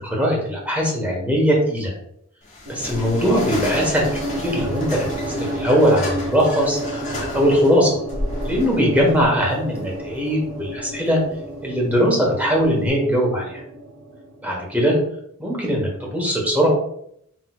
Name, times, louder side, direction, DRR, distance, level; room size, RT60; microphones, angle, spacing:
voice 1, 0.0-1.9 2.7-4.1 4.3-6.8 7.1-7.9 8.4-11.2 11.6-13.5 14.4-15.0 15.4-16.7, equal, 5° right, -2 dB, 1.2 m, -20 dB
sound 1, 2.4-12.9, left 1 dB, 30° left, 1.2 m, -33 dB
sound 2, 2.7-14.9, right 1 dB, 75° right, 0.8 m, -32 dB
6.1 x 3.1 x 2.3 m, 0.71 s
head